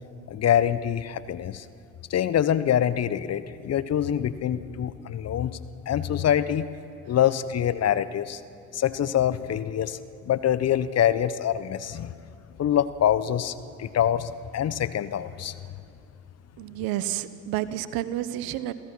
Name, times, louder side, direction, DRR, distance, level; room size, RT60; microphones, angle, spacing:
voice 1, 0.3-1.6 2.1-5.6 5.9-6.7 7.1-8.4 8.7-10.0 10.3-12.1 12.6-13.5 13.8-15.5, left 10 dB, 40° left, 14 dB, 0.9 m, -25 dB
voice 2, 16.6-18.7, right 13 dB, 60° right, 14 dB, 1.0 m, -30 dB
27.5 x 15.5 x 6.1 m, 2.5 s
hypercardioid pair, 55°, 41 cm